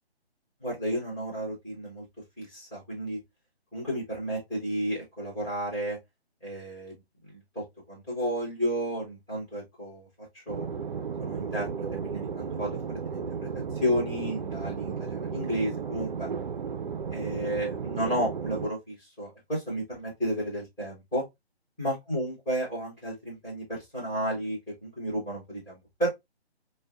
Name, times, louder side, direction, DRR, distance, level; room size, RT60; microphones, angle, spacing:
voice 1, 0.6-2.0 2.4-3.2 3.7-6.0 6.4-10.7 11.2-13.5 13.8-16.3 17.1-21.2 21.8-26.1, equal, 5° left, 1.1 m, -32 dB
sound 1, 10.5-18.7, right 6 dB, 50° right, 0.4 m, -34 dB
4.3 x 2.2 x 2.3 m
hypercardioid pair, 170°, 32 cm